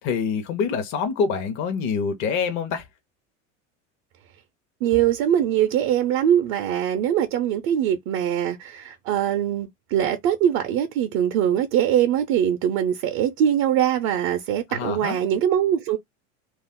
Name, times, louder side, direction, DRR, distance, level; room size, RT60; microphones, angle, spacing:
voice 1, 0.0-2.9 14.7-15.2, left 5 dB, 50° left, 0.8 m, -26 dB
voice 2, 4.8-16.0, right 10 dB, 60° right, 0.5 m, -22 dB
2.4 x 2.0 x 3.6 m
supercardioid pair, 105°, 39 cm